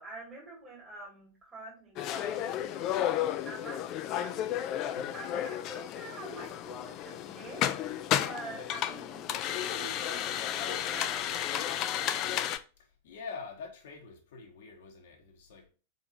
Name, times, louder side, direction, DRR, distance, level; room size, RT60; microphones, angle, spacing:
voice 1, 0.0-4.5 5.1-7.9 8.2-12.2, right 2 dB, 20° right, 1.7 m, -47 dB
sound 1, 2.0-12.6, left 11 dB, 35° left, 0.4 m, -33 dB
voice 2, 12.8-15.7, left 5 dB, 60° left, 0.9 m, -46 dB
4.5 x 4.2 x 2.6 m
figure-of-eight pair, 90°, 0 cm